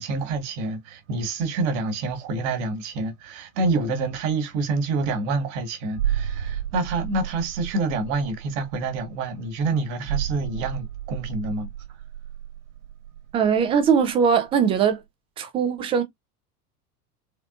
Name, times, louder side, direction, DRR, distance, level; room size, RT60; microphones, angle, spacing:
voice 1, 0.0-11.7, right 3 dB, 50° right, 1.3 m, -27 dB
sound 1, 5.9-14.4 14.6-14.8, right 10 dB, 80° right, 0.6 m, -32 dB
voice 2, 13.3-15.0 15.4-16.0, right 7 dB, 15° right, 0.3 m, -20 dB
3.7 x 3.4 x 2.4 m
figure-of-eight pair, 85°, 46 cm